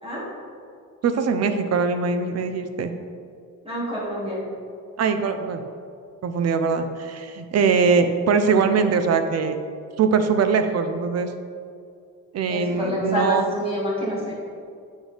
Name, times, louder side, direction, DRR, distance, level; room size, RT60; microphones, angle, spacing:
voice 1, 1.0-2.9 5.0-5.6 6.2-9.6 10.0-11.3 12.3-13.4, right 5 dB, 50° right, 8 dB, 0.6 m, -22 dB
voice 2, 3.6-4.4 12.5-14.3, equal, 15° right, -6 dB, 1.9 m, -27 dB
8.2 x 6.3 x 3.4 m, 2.3 s
cardioid pair, 165°, 32 cm